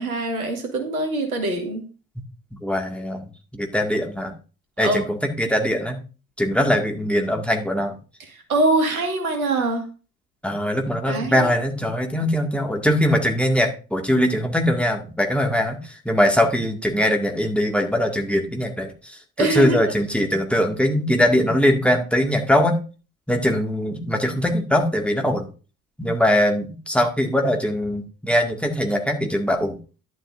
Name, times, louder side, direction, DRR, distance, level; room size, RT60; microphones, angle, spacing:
voice 1, 0.0-1.8 4.8-5.0 8.3-9.8 11.1-11.5 19.4-19.8, right 2 dB, 80° right, 4 dB, 2.0 m, -23 dB
voice 2, 2.6-3.2 3.5-4.3 4.8-6.0 6.4-8.0 10.4-22.8 23.3-25.5 26.0-29.8, equal, 5° left, 2 dB, 2.0 m, -21 dB
11.5 x 10.5 x 2.6 m, 0.35 s
figure-of-eight pair, 50°, 42 cm